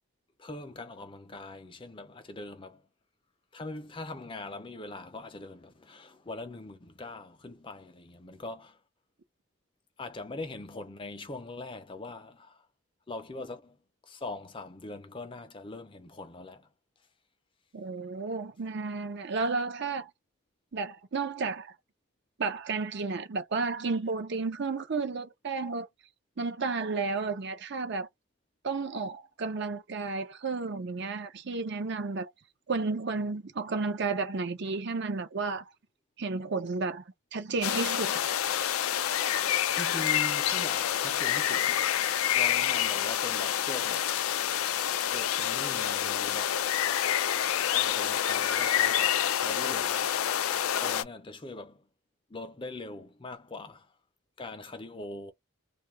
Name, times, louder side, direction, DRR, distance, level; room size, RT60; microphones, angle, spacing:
voice 1, 0.4-2.8 3.5-8.8 10.0-12.7 13.1-13.8 14.0-16.7 39.7-41.9 42.3-44.1 45.1-46.6 47.7-50.1 50.8-51.9 52.3-53.9 54.4-55.3, left 2 dB, 25° left, 0.5 m, -42 dB
voice 2, 17.7-20.1 20.7-21.7 22.4-25.9 26.4-28.1 28.6-32.3 32.7-35.6 36.2-37.0 37.3-38.3, right 4 dB, 50° right, 0.6 m, -32 dB
sound 1, 37.6-51.0, left 10 dB, 75° left, 0.4 m, -28 dB
2.7 x 2.3 x 3.1 m
head